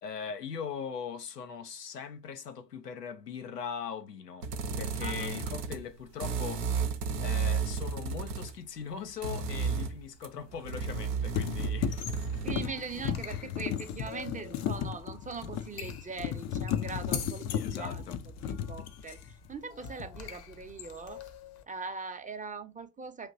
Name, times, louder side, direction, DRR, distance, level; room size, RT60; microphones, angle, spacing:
voice 1, 0.0-4.5 4.8-6.7 7.2-11.9 13.3-13.5 17.5-18.2, left 7 dB, 90° left, 0.6 m, -40 dB
sound 1, 4.4-5.9 6.2-8.6 9.2-12.8, right 5 dB, 80° right, 0.7 m, -33 dB
sound 2, 7.4-7.5 10.7-11.0 11.3-19.5 19.8-20.3, left 9 dB, 35° left, 0.5 m, -35 dB
sound 3, 11.9-21.6, left 8 dB, 50° left, 0.9 m, -46 dB
voice 2, 12.4-18.0 18.4-19.2 19.5-21.2 21.7-23.3, right 4 dB, 15° right, 0.6 m, -41 dB
5.0 x 2.9 x 2.5 m
figure-of-eight pair, 50°, 47 cm